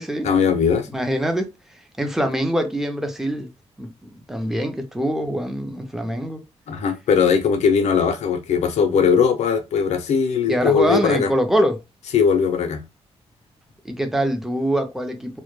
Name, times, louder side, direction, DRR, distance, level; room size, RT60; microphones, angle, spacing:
voice 1, 0.2-0.9 6.7-11.3 12.1-12.8, left 6 dB, 80° left, 0.4 m, -19 dB
voice 2, 0.9-1.5 2.0-3.5 3.8-6.4 10.5-11.8 13.8-15.4, equal, 5° right, 0.4 m, -24 dB
2.1 x 2.0 x 3.0 m
wide cardioid pair, 155°, 11 cm